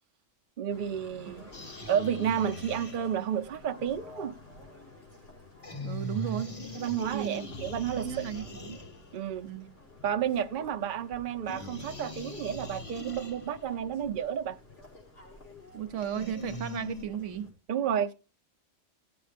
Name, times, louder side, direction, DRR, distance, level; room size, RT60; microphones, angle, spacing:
voice 1, 0.6-1.5 1.9-4.4 6.7-8.2 9.1-9.5 10.0-14.6 17.7-18.1, right 9 dB, 50° right, 0.8 m, -31 dB
sound 1, 0.7-17.5, left 2 dB, 80° left, 5.2 m, -52 dB
voice 2, 1.3-1.9 5.8-6.6 7.1-7.5 7.9-8.8 9.4-9.7 15.7-17.5, right 10 dB, 85° right, 1.1 m, -35 dB
sound 2, 1.5-3.4 5.6-9.3 11.5-13.7 16.0-17.0, left 1 dB, 30° left, 1.1 m, -41 dB
17.0 x 7.9 x 3.3 m
omnidirectional pair, 1.2 m